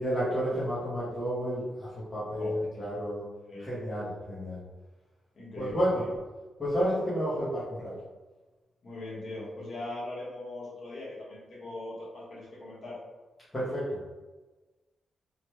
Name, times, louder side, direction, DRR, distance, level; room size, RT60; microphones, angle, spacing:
voice 1, 0.0-3.2 3.6-4.6 5.6-6.0 6.6-7.9 13.5-14.0, equal, 15° left, -11 dB, 0.7 m, -31 dB
voice 2, 5.3-6.1 8.8-13.0, left 2 dB, 50° left, -7 dB, 1.1 m, -40 dB
3.0 x 2.2 x 3.0 m, 1.2 s
wide cardioid pair, 175°, 0 cm